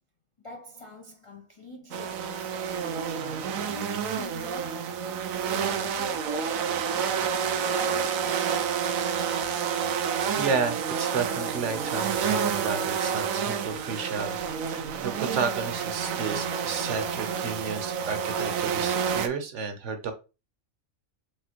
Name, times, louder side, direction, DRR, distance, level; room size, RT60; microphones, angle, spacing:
voice 1, 0.4-2.7 3.7-5.0 5.4-7.3, left 2 dB, 50° left, 0.3 m, -43 dB
sound 1, 1.9-19.3, right 7 dB, 90° right, 1.0 m, -29 dB
voice 2, 10.4-14.4 14.7-20.1, right 5 dB, 65° right, 1.1 m, -32 dB
5.0 x 3.2 x 2.9 m
omnidirectional pair, 1.4 m